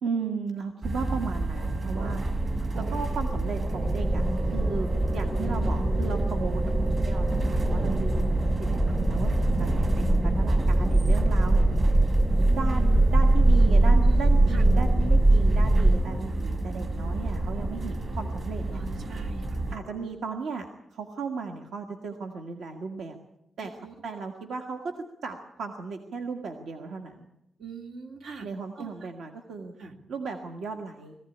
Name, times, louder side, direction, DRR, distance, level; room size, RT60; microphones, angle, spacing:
voice 1, 0.0-2.2 2.7-8.5 8.8-11.8 12.5-18.8 19.7-23.2 23.6-23.7 24.0-27.3 28.4-29.7 30.1-31.2, right 4 dB, 70° right, 4 dB, 1.7 m, -36 dB
sound 1, 0.8-19.8, right 2 dB, 35° right, 1.7 m, -30 dB
sound 2, 2.9-20.1, equal, 50° right, 4.3 m, -49 dB
sound 3, 3.7-16.0, right 1 dB, 10° right, 0.7 m, -22 dB
voice 2, 13.9-14.2 14.5-14.6 18.7-19.5 23.8-23.9 27.6-28.5 28.8-28.9 29.8-30.0, right 4 dB, 90° right, 4 dB, 2.7 m, -41 dB
21.0 x 15.5 x 10.0 m, 0.86 s
wide cardioid pair, 180°, 0 cm